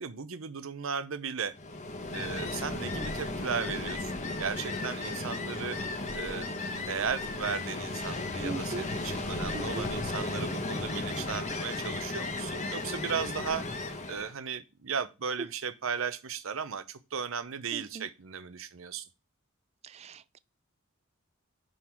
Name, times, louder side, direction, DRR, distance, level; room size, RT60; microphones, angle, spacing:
voice 1, 0.0-1.6 2.1-5.8 6.1-13.6 14.1-19.1, right 6 dB, 70° right, 0.7 m, -36 dB
Ocean, 1.5-14.3, left 2 dB, 35° left, 1.0 m, -35 dB
voice 2, 8.4-8.8 9.5-9.9 17.7-18.1 19.8-20.4, right 4 dB, 30° right, 0.3 m, -40 dB
9.9 x 3.9 x 4.5 m
head